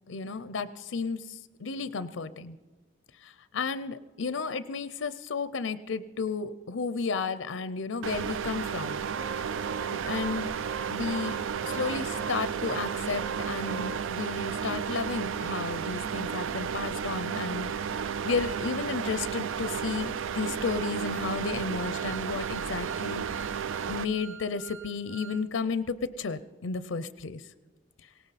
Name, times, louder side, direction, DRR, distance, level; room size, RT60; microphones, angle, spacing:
voice 1, 0.1-2.6 3.2-9.0 9.9-10.5 10.9-17.7 18.2-23.6 23.9-27.5, left 4 dB, 85° left, 15 dB, 0.6 m, -33 dB
sound 1, 8.0-24.1, right 7 dB, 85° right, 0.4 m, -33 dB
Organ, 8.8-14.4 14.9-15.0 15.2-15.4 15.8-25.4 25.8-25.9, right 5 dB, 70° right, 0.9 m, -45 dB
18.5 x 18.0 x 4.1 m, 1.3 s
head